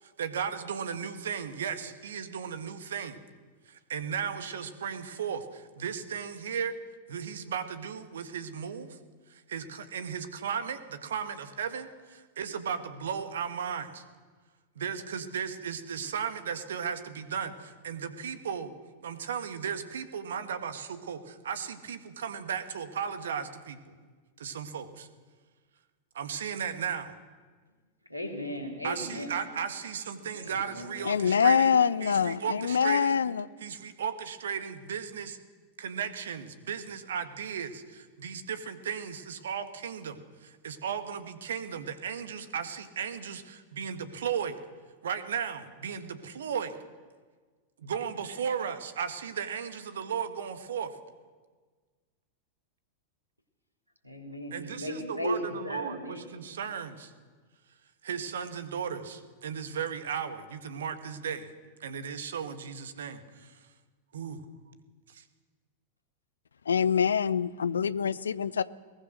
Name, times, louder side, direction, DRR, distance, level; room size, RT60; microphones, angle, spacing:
voice 1, 0.0-3.2 3.7-6.7 7.1-9.0 9.3-14.0 14.7-18.7 19.0-23.9 24.4-25.1 26.1-27.1 28.8-33.2 33.6-35.4 35.8-44.6 45.0-46.8 47.8-50.9 54.5-57.1 58.0-61.5 61.8-63.6 64.1-64.4 65.1-65.2, right 7 dB, 65° right, 1.7 m, -35 dB
voice 2, 28.1-29.5 30.2-30.9 54.0-56.2, left 1 dB, 90° right, 3.9 m, -36 dB
voice 3, 31.1-33.5 66.7-68.6, left 7 dB, 70° left, 0.6 m, -25 dB
21.5 x 19.0 x 6.5 m
figure-of-eight pair, 90°, 0 cm